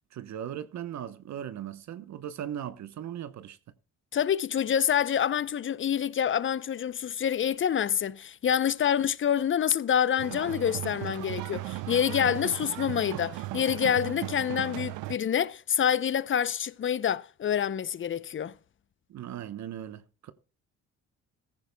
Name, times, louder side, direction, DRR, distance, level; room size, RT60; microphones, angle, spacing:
voice 1, 0.1-3.6 19.1-20.3, right 10 dB, 65° right, 0.9 m, -38 dB
voice 2, 4.1-18.5, left 9 dB, 40° left, 0.6 m, -27 dB
sound 1, 10.2-15.2, right 18 dB, 90° right, 0.5 m, -36 dB
15.0 x 15.0 x 2.2 m
cardioid pair, 90°, 30 cm